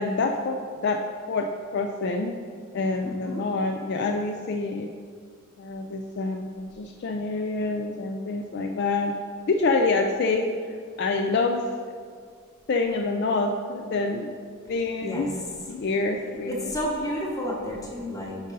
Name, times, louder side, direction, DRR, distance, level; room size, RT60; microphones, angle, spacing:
voice 1, 0.0-2.4 2.7-4.9 5.6-9.1 9.5-10.5 11.0-11.6 12.7-14.3 14.7-15.3 15.7-16.7, left 3 dB, 50° left, 4 dB, 0.4 m, -26 dB
voice 2, 3.0-3.4 15.0-15.3 16.4-18.4, equal, 15° left, -2 dB, 1.1 m, -31 dB
8.9 x 5.3 x 4.0 m, 2.1 s
head